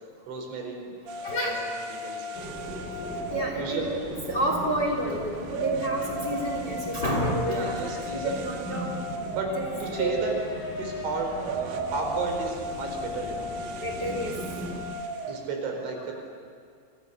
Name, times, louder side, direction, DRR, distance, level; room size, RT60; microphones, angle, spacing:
voice 1, 0.3-1.5 1.9-2.3 3.5-3.9 7.5-8.5 9.1-10.4 10.8-13.5 15.3-16.1, right 3 dB, 80° right, 2 dB, 6.9 m, -33 dB
sound 1, 1.1-15.5, right 1 dB, 60° right, 3.0 m, -37 dB
voice 2, 1.2-1.6 3.3-7.8 8.1-8.9 9.5-9.6 10.0-10.2 13.8-14.3, right 1 dB, 25° left, 1 dB, 3.1 m, -29 dB
Central Line to Ealing Broadway, 2.3-14.8, left 1 dB, 50° left, 8.9 m, -40 dB
sound 2, 9.3-15.0, left 3 dB, 65° left, 5.1 m, -42 dB
29.5 x 27.0 x 6.8 m, 2.2 s
omnidirectional pair, 5.3 m